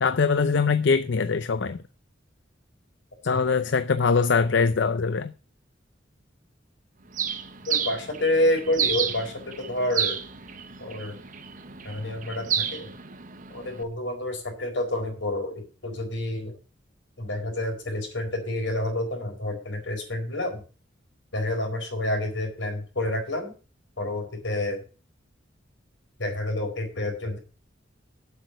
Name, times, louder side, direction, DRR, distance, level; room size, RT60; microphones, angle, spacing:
voice 1, 0.0-1.8 3.3-5.3, left 5 dB, 70° left, 0.5 m, -22 dB
Bird, 7.1-13.8, right 8 dB, 45° right, 1.0 m, -31 dB
voice 2, 7.7-10.2 10.8-11.2 11.8-12.9 13.5-16.5 17.2-20.6 21.3-23.5 24.0-24.8 26.2-27.4, left 1 dB, 85° left, 4.4 m, -28 dB
8.0 x 6.6 x 7.9 m
head